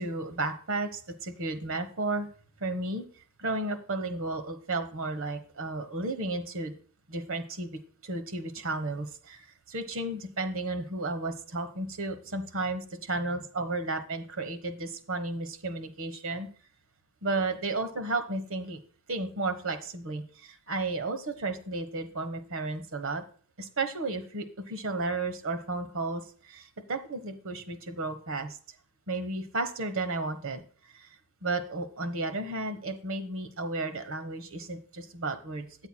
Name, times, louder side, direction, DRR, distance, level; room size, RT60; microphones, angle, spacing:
voice 1, 0.0-2.3 2.6-3.1 3.4-6.7 7.1-16.5 17.2-18.8 19.1-23.2 23.6-26.2 26.5-28.5 29.1-30.6 31.4-35.7, right 2 dB, 70° right, 9 dB, 1.3 m, -33 dB
13.0 x 8.0 x 2.3 m, 0.44 s
head